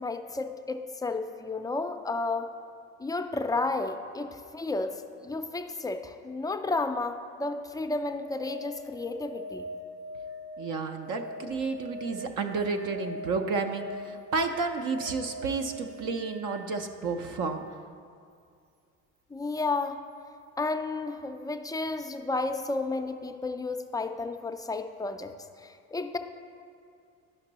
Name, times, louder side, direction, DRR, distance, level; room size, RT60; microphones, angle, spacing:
voice 1, 0.0-2.5 3.0-9.7 19.3-20.0 20.6-25.3 25.6-26.2, left 3 dB, 10° left, 7 dB, 0.5 m, -32 dB
sound 1, 7.7-17.5 19.8-19.9, equal, 70° right, 1.3 m, -43 dB
voice 2, 10.6-17.6, right 4 dB, 50° right, 5 dB, 0.7 m, -31 dB
11.0 x 5.8 x 3.0 m, 2.3 s
hypercardioid pair, 55°, 39 cm